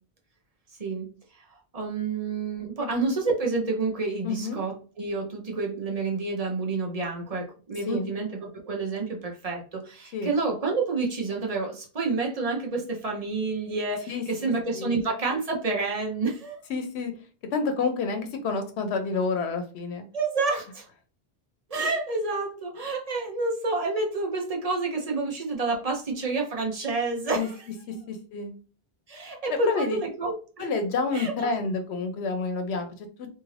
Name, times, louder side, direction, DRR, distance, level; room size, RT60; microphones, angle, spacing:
voice 1, 1.7-16.7 20.1-20.9 21.7-27.7 27.9-28.0 29.1-30.7 31.1-31.5, right 3 dB, 40° right, 0 dB, 0.8 m, -29 dB
voice 2, 4.2-4.6 7.9-8.1 10.1-10.3 14.1-15.0 16.7-17.1 17.5-20.1 27.3-27.5 28.1-28.5 29.5-30.0 30.6-33.3, left 4 dB, 80° left, 6 dB, 0.9 m, -29 dB
2.7 x 2.5 x 3.2 m, 0.37 s
omnidirectional pair, 1.1 m